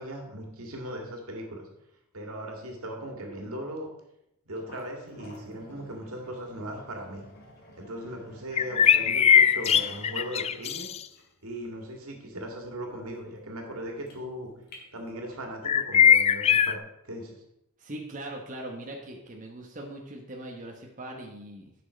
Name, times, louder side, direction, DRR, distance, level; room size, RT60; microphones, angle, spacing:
voice 1, 0.0-1.7 2.1-3.9 4.5-7.2 7.8-10.9 11.4-14.5 14.9-16.8 17.0-17.4, equal, 80° right, 2 dB, 2.1 m, -38 dB
sound 1, 4.5-15.5, left 1 dB, 45° left, 2.2 m, -52 dB
sound 2, 8.6-11.0 15.7-16.8, left 8 dB, 30° left, 0.3 m, -20 dB
voice 2, 17.8-21.7, right 1 dB, 35° right, 0 dB, 1.0 m, -40 dB
9.7 x 6.1 x 5.1 m, 0.86 s
head